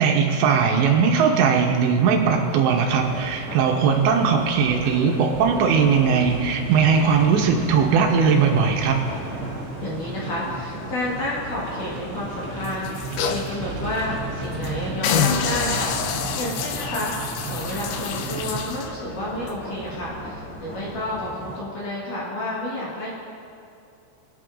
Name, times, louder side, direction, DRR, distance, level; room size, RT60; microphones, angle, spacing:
voice 1, 0.0-9.0, right 6 dB, 85° right, 2 dB, 2.9 m, -19 dB
sound 1, 1.0-18.6, right 3 dB, 55° right, 2.3 m, -36 dB
sound 2, 2.8-21.6, equal, 40° left, 3.2 m, -38 dB
voice 2, 9.8-23.1, left 1 dB, 60° left, -6 dB, 2.4 m, -30 dB
sound 3, 12.6-13.5 14.0-14.1 14.4-14.7 15.0-18.9 19.5-19.6, left 7 dB, 85° left, 2.3 m, -27 dB
22.0 x 8.6 x 2.5 m, 2.7 s
omnidirectional pair, 5.4 m